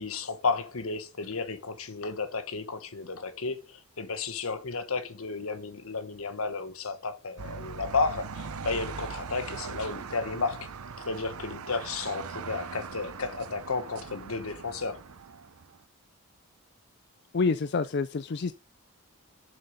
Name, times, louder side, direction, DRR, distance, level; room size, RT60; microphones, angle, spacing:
voice 1, 0.0-10.7 11.0-15.0, left 4 dB, 75° left, 1.3 m, -33 dB
sound 1, 7.4-15.8, right 5 dB, 85° right, 0.7 m, -41 dB
voice 2, 17.3-18.5, left 4 dB, 50° left, 0.4 m, -27 dB
7.6 x 6.7 x 5.1 m
head